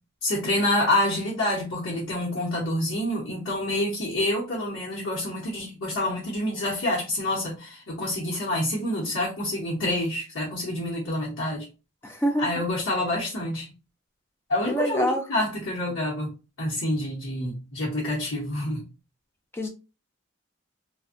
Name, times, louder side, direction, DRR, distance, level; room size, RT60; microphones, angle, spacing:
voice 1, 0.2-11.7 12.4-13.7 14.5-18.9, left 1 dB, 85° left, 0.9 m, -27 dB
voice 2, 12.0-12.5 14.6-15.2 19.5-19.7, right 1 dB, 10° left, 0.5 m, -25 dB
2.5 x 2.2 x 2.5 m
head